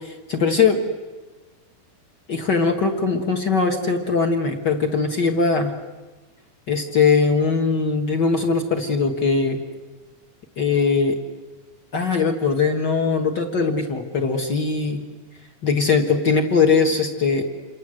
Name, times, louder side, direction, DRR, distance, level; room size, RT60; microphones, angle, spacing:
voice 1, 0.0-0.8 2.3-5.7 6.7-9.6 10.6-11.2 11.9-15.0 15.6-17.4, left 4 dB, 55° left, 5 dB, 1.1 m, -20 dB
28.5 x 24.5 x 7.8 m, 1.2 s
omnidirectional pair, 4.5 m